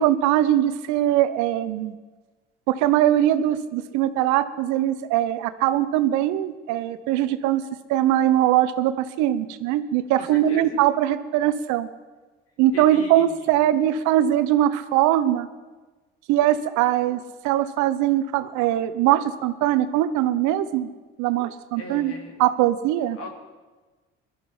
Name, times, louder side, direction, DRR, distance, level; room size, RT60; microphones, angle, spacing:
voice 1, 0.0-2.0 2.7-7.6 7.9-11.9 12.6-15.5 16.3-20.9 21.2-22.1 22.4-23.2, right 12 dB, 70° right, 13 dB, 0.9 m, -21 dB
voice 2, 10.2-10.8 12.7-13.3 21.8-22.3 23.2-23.3, left 2 dB, 50° left, 1 dB, 3.0 m, -38 dB
21.5 x 12.0 x 4.4 m, 1.3 s
hypercardioid pair, 60°, 31 cm